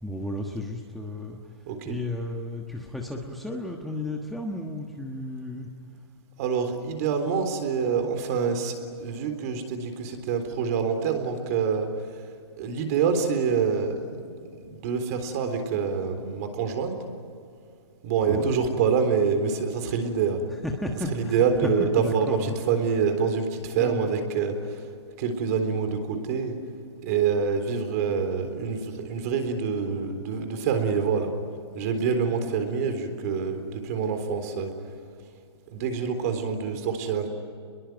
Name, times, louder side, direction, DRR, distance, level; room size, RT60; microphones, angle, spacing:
voice 1, 0.0-5.7 18.2-18.5 20.5-22.6 23.8-24.1, left 1 dB, ahead, 0 dB, 1.3 m, -33 dB
voice 2, 1.7-2.0 6.4-12.3 12.6-16.9 18.0-20.4 21.1-24.9 25.2-26.6 27.0-31.3 31.7-34.7 35.7-37.3, right 6 dB, 35° right, 7 dB, 3.8 m, -26 dB
29.0 x 22.0 x 9.2 m, 2.4 s
hypercardioid pair, 160°, 14 cm